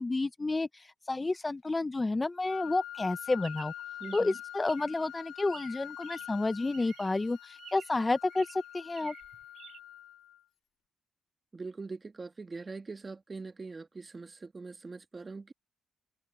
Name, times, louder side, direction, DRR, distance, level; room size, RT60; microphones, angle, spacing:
voice 1, 0.0-3.7 4.1-9.1, left 2 dB, 20° left, 0.5 m, -30 dB
Wind instrument woodwind instrument, 2.5-10.4, left 11 dB, 85° left, 2.2 m, -46 dB
Chirp tweet, 3.4-5.0 5.5-6.5 6.7-7.2 7.6-8.0 8.3-9.8, right 10 dB, 65° right, 6.5 m, -52 dB
voice 2, 4.0-4.3 11.5-15.5, right 4 dB, 30° right, 1.3 m, -42 dB
cardioid pair, 90°, 0 cm